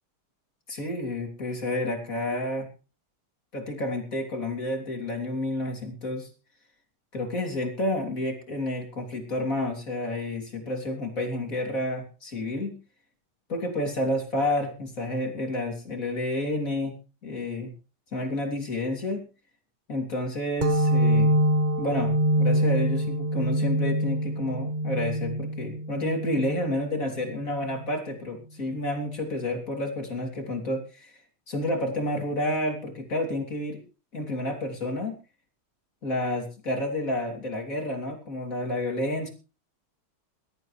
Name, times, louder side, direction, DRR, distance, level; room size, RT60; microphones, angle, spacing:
voice 1, 0.7-2.7 3.5-6.3 7.1-12.7 13.5-17.0 17.2-17.7 18.1-19.2 19.9-21.3 21.8-31.1 31.5-33.8 34.1-35.2 36.0-39.3, left 1 dB, 40° left, 3 dB, 3.5 m, -30 dB
sound 1, 20.6-27.9, right 1 dB, 80° right, 0.4 m, -25 dB
21.5 x 13.0 x 3.3 m, 0.33 s
omnidirectional pair, 2.3 m